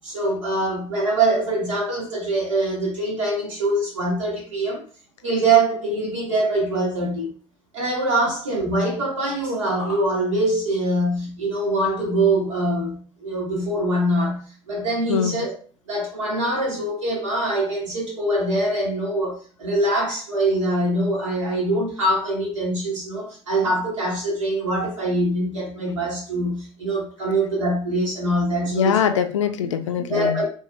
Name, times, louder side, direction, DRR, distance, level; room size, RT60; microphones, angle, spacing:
voice 1, 0.0-4.8 5.2-7.3 7.7-15.5 15.9-29.0 30.1-30.4, right 1 dB, 75° right, -4 dB, 1.3 m, -23 dB
voice 2, 28.7-30.4, left 8 dB, 75° left, 8 dB, 0.4 m, -22 dB
3.0 x 2.7 x 2.4 m, 0.41 s
figure-of-eight pair, 70°, 16 cm